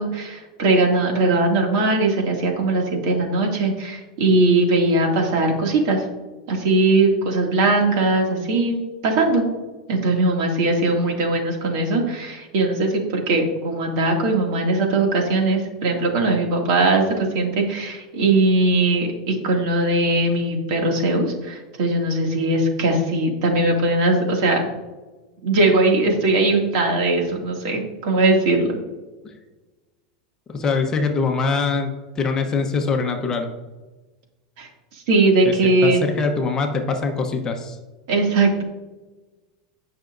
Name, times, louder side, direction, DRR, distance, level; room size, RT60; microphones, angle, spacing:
voice 1, 0.0-6.0 6.5-9.4 9.9-24.7 25.4-28.8 34.6-34.7 35.1-36.0 38.1-38.6, right 2 dB, 60° right, 1 dB, 2.3 m, -20 dB
voice 2, 30.5-33.5 35.4-35.5 35.8-37.8, left 4 dB, 20° left, 3 dB, 1.0 m, -23 dB
17.0 x 6.0 x 2.6 m, 1.2 s
supercardioid pair, 155°, 3 cm